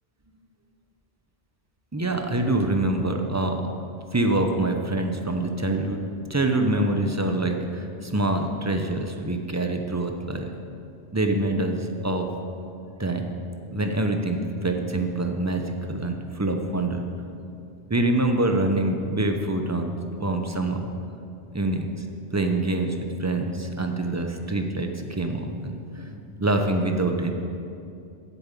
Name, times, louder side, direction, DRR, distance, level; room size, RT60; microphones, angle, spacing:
voice 1, 1.9-3.6 4.1-6.0 6.3-10.4 11.1-12.3 13.0-13.3 13.7-15.6 15.9-17.0 17.9-20.9 21.5-21.9 22.3-27.3, right 2 dB, 20° right, 4 dB, 0.5 m, -25 dB
8.0 x 7.1 x 8.4 m, 2.6 s
omnidirectional pair, 1.2 m